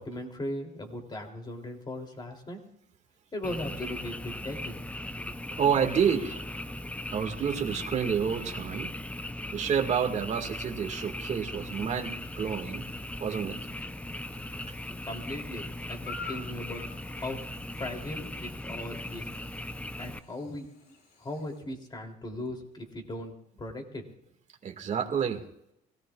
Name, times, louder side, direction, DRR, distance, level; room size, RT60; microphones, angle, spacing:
voice 1, 0.0-2.6 3.3-4.8 15.0-17.4 17.8-19.3 20.0-20.7 21.2-24.0, left 1 dB, 25° left, 3 dB, 3.1 m, -38 dB
Frog, 3.4-20.2, left 1 dB, 10° left, 0.6 m, -38 dB
voice 2, 5.6-6.5 7.1-8.9 9.5-12.8 13.2-13.6 24.6-25.4, right 7 dB, 45° right, 4 dB, 1.9 m, -29 dB
Chirp tweet / Buzz, 11.5-21.6, left 4 dB, 70° left, 5.6 m, -51 dB
24.0 x 17.5 x 2.4 m, 0.78 s
cardioid pair, 110°, 17 cm